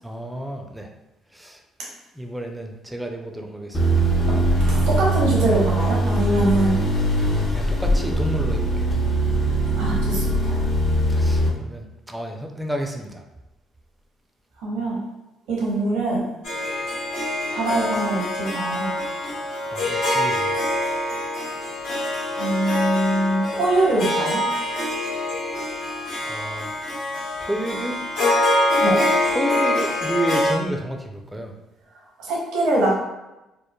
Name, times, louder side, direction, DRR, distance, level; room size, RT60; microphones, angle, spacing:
voice 1, 0.0-0.9 1.3-1.6 2.1-4.1 7.5-8.9 11.1-13.2 19.7-20.7 26.2-26.7 27.4-28.0 29.3-31.5, right 1 dB, 10° right, 2 dB, 0.4 m, -31 dB
sound 1, 3.7-11.5, right 1 dB, 50° left, 0.6 m, -21 dB
voice 2, 4.3-6.8 9.8-10.6 14.6-15.0 15.5-16.2 17.5-18.9 22.4-24.4 28.8-29.0 32.2-32.9, right 1 dB, 75° right, -3 dB, 0.8 m, -23 dB
Harp, 16.4-30.5, left 1 dB, 85° left, 1.1 m, -24 dB
3.0 x 2.1 x 2.2 m, 0.97 s
supercardioid pair, 60°, 0 cm